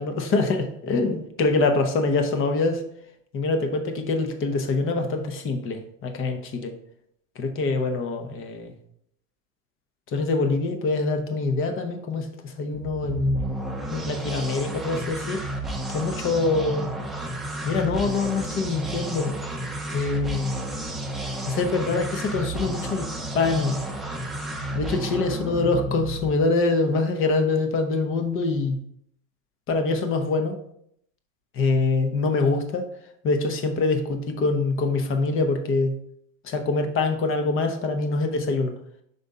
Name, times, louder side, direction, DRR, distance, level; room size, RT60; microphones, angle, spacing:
voice 1, 0.0-2.8 3.3-6.7 7.4-8.7 10.1-13.4 13.9-15.4 15.9-16.9 17.6-19.3 19.9-20.5 21.5-23.1 23.3-23.7 24.7-28.8 29.7-30.6 31.5-32.9 33.2-36.0 36.4-38.7, left 3 dB, 30° left, 7 dB, 1.0 m, -24 dB
sound 1, 12.7-26.5, right 1 dB, ahead, 0.8 m, -32 dB
5.3 x 3.4 x 5.4 m, 0.71 s
supercardioid pair, 120°, 40 cm